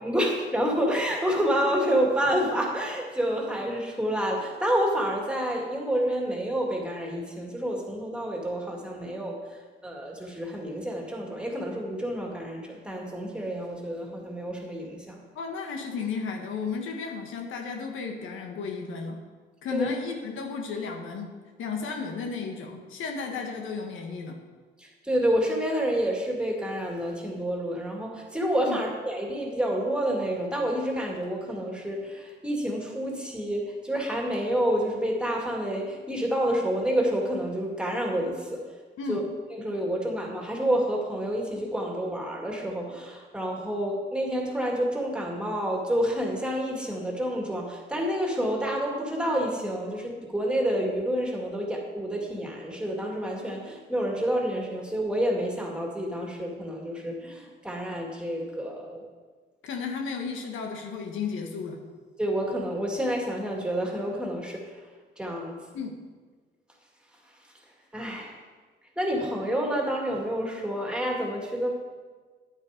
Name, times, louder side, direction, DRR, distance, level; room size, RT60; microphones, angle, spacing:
voice 1, 0.0-9.4 9.8-15.2 19.7-19.9 25.0-38.6 39.1-39.2 39.5-59.0 62.2-64.7 65.2-65.6 67.9-68.3 69.0-71.7, equal, 5° right, -1 dB, 2.4 m, -28 dB
voice 2, 15.3-19.2 19.6-21.3 21.6-24.4 28.6-28.8 39.0-39.2 59.6-61.8 65.7-66.0, left 5 dB, 80° left, 2 dB, 1.5 m, -33 dB
9.8 x 8.3 x 5.1 m, 1.4 s
cardioid pair, 90°, 20 cm